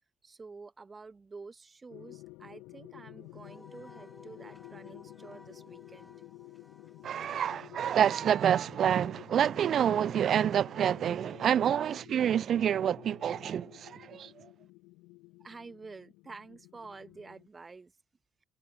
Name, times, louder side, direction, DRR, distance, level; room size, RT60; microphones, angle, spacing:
voice 1, 0.2-6.1 15.4-18.0, right 4 dB, 30° right, 1.6 m, -49 dB
sound 1, 1.9-17.5, left 23 dB, 70° left, 1.2 m, -52 dB
Wind instrument woodwind instrument, 3.4-8.2, left 2 dB, 15° left, 3.0 m, -57 dB
voice 2, 7.0-14.3, right 9 dB, 50° right, 0.4 m, -27 dB
figure-of-eight pair, 50°, 0 cm